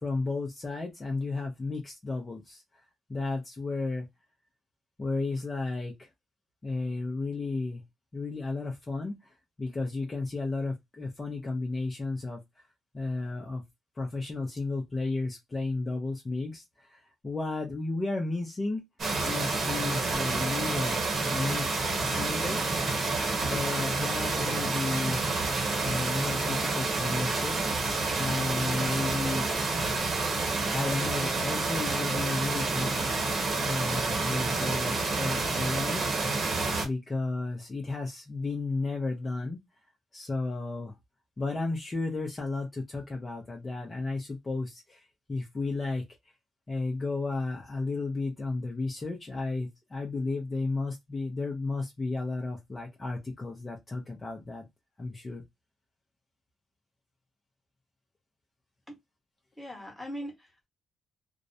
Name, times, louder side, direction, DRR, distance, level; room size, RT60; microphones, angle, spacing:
voice 1, 0.0-2.6 3.1-4.1 5.0-6.1 6.6-7.8 8.1-12.4 12.9-13.6 14.0-18.8 19.2-22.8 23.4-25.2 25.8-27.6 28.2-29.5 30.7-36.1 36.8-39.6 40.1-40.9 41.4-46.0 46.7-54.6 55.0-55.4, left 3 dB, 25° left, 0.5 m, -33 dB
sound 1, 19.0-36.9, right 3 dB, 45° right, 0.9 m, -29 dB
voice 2, 59.6-60.7, equal, 5° left, 1.1 m, -40 dB
2.4 x 2.0 x 2.6 m
cardioid pair, 90°, 0 cm